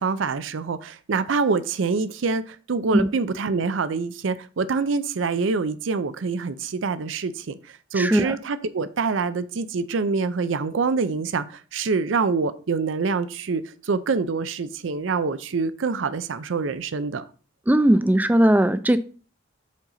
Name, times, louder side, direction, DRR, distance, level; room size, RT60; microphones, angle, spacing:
voice 1, 0.0-17.2, right 4 dB, 70° right, 0.5 m, -25 dB
voice 2, 8.0-8.4 17.7-19.0, right 1 dB, 10° right, 0.3 m, -18 dB
7.4 x 3.8 x 5.6 m
head